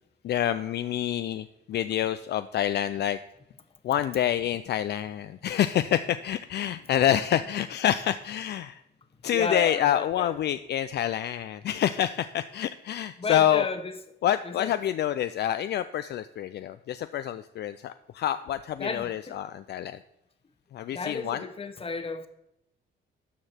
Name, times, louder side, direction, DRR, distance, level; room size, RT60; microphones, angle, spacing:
voice 1, 0.2-3.2 3.8-8.8 9.2-13.6 14.2-20.0 20.7-21.4, left 11 dB, 60° left, 0.4 m, -27 dB
voice 2, 9.3-10.3 13.2-14.0 14.4-14.8 18.8-19.4 20.9-22.3, left 4 dB, 30° left, 1.0 m, -33 dB
12.5 x 4.8 x 4.4 m
cardioid pair, 90°, 20 cm